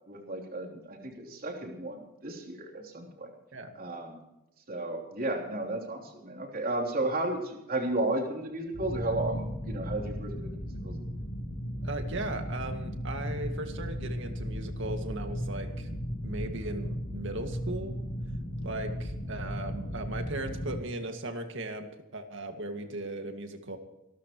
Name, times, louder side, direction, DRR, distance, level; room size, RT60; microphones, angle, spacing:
voice 1, 0.1-3.3 3.7-4.2 4.7-10.9, right 2 dB, 45° right, 1 dB, 3.4 m, -33 dB
sound 1, 8.7-20.8, equal, 70° left, 4.0 m, -36 dB
voice 2, 11.8-15.9 16.2-18.0 18.6-23.8, right 2 dB, 65° right, 6 dB, 2.1 m, -37 dB
26.5 x 13.0 x 3.1 m, 0.93 s
head